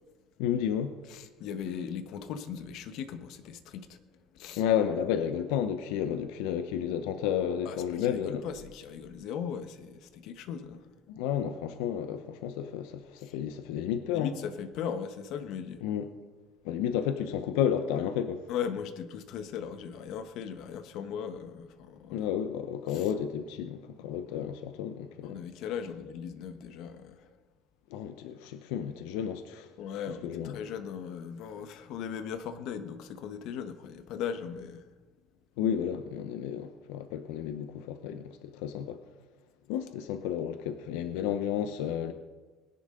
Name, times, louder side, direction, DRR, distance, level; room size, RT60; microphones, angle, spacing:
voice 1, 0.4-0.9 4.6-8.4 11.1-14.3 15.8-16.1 16.6-18.5 22.1-25.4 27.9-29.7 30.2-30.6 35.6-39.0 39.7-42.1, left 9 dB, 90° left, 0.8 m, -32 dB
voice 2, 1.1-4.0 4.3-4.6 7.6-10.8 13.2-13.3 14.1-15.8 18.5-22.3 22.9-23.1 25.2-27.3 29.8-34.9, left 7 dB, 60° left, 1.1 m, -38 dB
20.5 x 11.0 x 3.8 m
cardioid pair, 150°, 0 cm